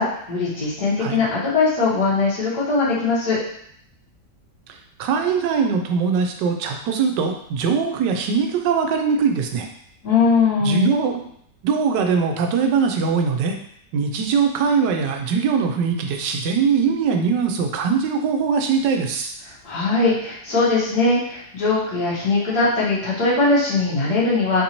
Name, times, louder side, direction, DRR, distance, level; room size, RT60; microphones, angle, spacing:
voice 1, 0.0-3.4 10.0-10.9 19.6-24.6, left 3 dB, 65° left, -8 dB, 1.8 m, -20 dB
voice 2, 5.0-9.7 10.6-11.2 11.6-13.6 13.9-19.3, right 5 dB, 85° right, 4 dB, 1.2 m, -21 dB
3.9 x 2.7 x 2.9 m, 0.67 s
omnidirectional pair, 1.8 m